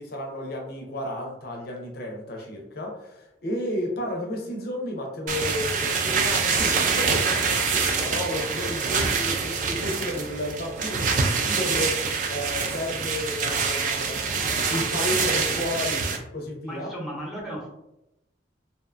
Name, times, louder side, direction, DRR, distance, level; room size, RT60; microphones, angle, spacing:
voice 1, 0.0-14.3 14.7-15.9 16.3-16.9, left 1 dB, 55° left, 0 dB, 0.5 m, -32 dB
sound 1, 5.3-16.2, right 5 dB, 45° right, 0.3 m, -25 dB
voice 2, 15.5-16.0 16.6-17.7, equal, ahead, -4 dB, 0.6 m, -36 dB
2.6 x 2.2 x 2.4 m, 0.88 s
head